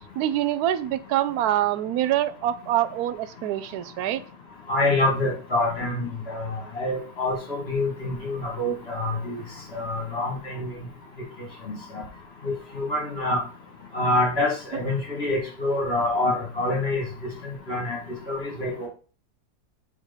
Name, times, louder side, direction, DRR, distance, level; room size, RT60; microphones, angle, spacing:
voice 1, 0.2-4.2, right 12 dB, 75° right, 1.1 m, -25 dB
voice 2, 4.7-9.4 9.7-10.7 11.7-12.0 12.4-13.4 13.9-17.0 17.7-18.0 18.3-18.9, left 2 dB, 40° left, 2.5 m, -26 dB
7.1 x 4.0 x 5.5 m
omnidirectional pair, 1.7 m